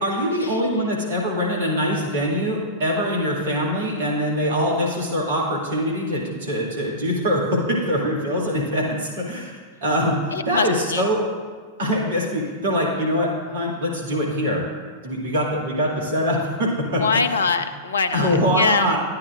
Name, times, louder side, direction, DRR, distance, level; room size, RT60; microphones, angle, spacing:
voice 1, 0.0-9.5 9.8-10.2 10.5-11.2 11.8-14.6 15.0-17.0 18.1-19.0, equal, 60° right, -3 dB, 2.1 m, -23 dB
voice 2, 1.6-2.1 10.3-11.0 16.9-18.9, left 4 dB, 70° left, 10 dB, 0.5 m, -24 dB
12.0 x 9.7 x 2.4 m, 1.5 s
figure-of-eight pair, 90°, 0 cm